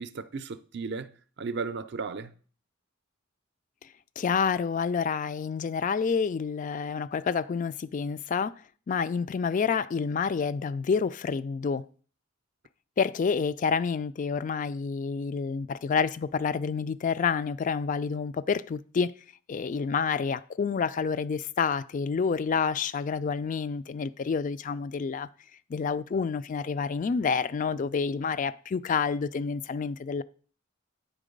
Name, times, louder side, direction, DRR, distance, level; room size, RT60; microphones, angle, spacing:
voice 1, 0.0-2.3, right 4 dB, 55° right, 0.5 m, -35 dB
voice 2, 4.2-8.6 8.9-11.9 13.0-19.1 19.5-25.3 25.7-30.2, left 5 dB, 40° left, 0.3 m, -28 dB
9.1 x 3.8 x 5.1 m
head